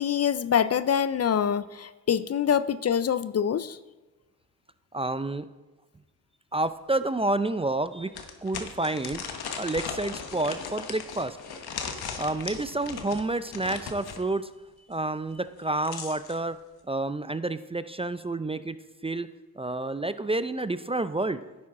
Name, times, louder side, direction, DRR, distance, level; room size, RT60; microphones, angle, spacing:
voice 1, 0.0-3.8, left 8 dB, 40° left, 15 dB, 0.5 m, -25 dB
voice 2, 4.9-5.4 6.5-8.1 8.4-9.2 9.6-11.4 12.1-14.5 14.9-16.6 16.9-18.8 19.0-19.3 19.6-21.4, right 2 dB, 15° right, 12 dB, 0.4 m, -29 dB
sound 1, 6.7-6.8 7.2-7.3 8.1-14.2 15.5-16.4, left 6 dB, 75° left, 1.1 m, -38 dB
10.0 x 8.6 x 3.7 m, 1.2 s
cardioid pair, 55°, 38 cm